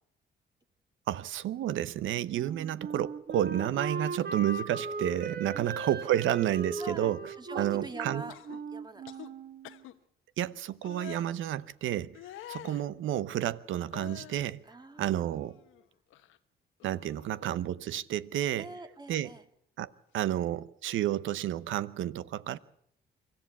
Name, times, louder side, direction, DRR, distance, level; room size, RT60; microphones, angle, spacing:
voice 1, 1.1-8.2 10.4-12.2 12.5-14.6 15.0-15.6 16.8-18.7 19.1-19.3 19.8-19.9 20.1-22.6, right 12 dB, 80° right, 0.9 m, -31 dB
Wind instrument woodwind instrument, 2.3-9.8, right 4 dB, 50° right, 2.1 m, -38 dB
voice 2, 6.8-8.4 8.7-9.0 14.6-15.5 18.6-19.4, right 2 dB, 20° right, 2.2 m, -44 dB
sound 1, 8.3-8.6 9.1-9.3 9.6-9.9 10.8-11.3 12.1-12.9 13.9-14.5 15.0-15.8 16.1-16.4 16.8-17.6 18.9-19.0, left 13 dB, 90° left, 1.1 m, -48 dB
25.0 x 14.0 x 8.4 m
cardioid pair, 90°, 20 cm